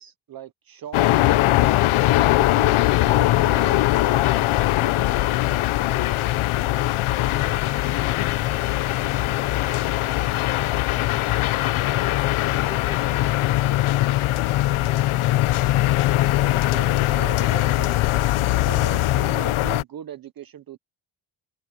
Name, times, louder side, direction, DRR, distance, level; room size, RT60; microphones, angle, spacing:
voice 1, 0.0-1.7 2.1-5.2 16.4-20.8, right 10 dB, 45° right, 0.9 m, -40 dB
sound 1, 0.9-19.8, left 16 dB, 75° left, 0.8 m, -21 dB
voice 2, 6.0-6.1, left 2 dB, 10° left, 3.2 m, -47 dB
wide cardioid pair, 175°, 50 cm